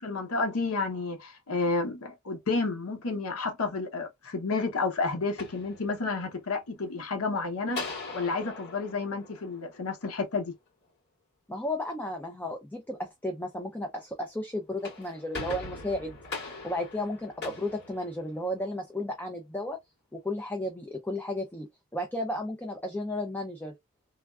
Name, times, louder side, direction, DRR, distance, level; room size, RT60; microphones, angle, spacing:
voice 1, 0.0-7.9 8.1-10.5, left 3 dB, 80° left, 0.8 m, -31 dB
sound 1, 5.2-6.4 7.7-10.2 14.6-18.7, left 3 dB, 50° left, 2.1 m, -41 dB
voice 2, 11.5-16.2 16.6-19.8 20.1-21.7 21.9-23.7, left 1 dB, 10° left, 0.4 m, -33 dB
3.3 x 2.3 x 2.3 m
head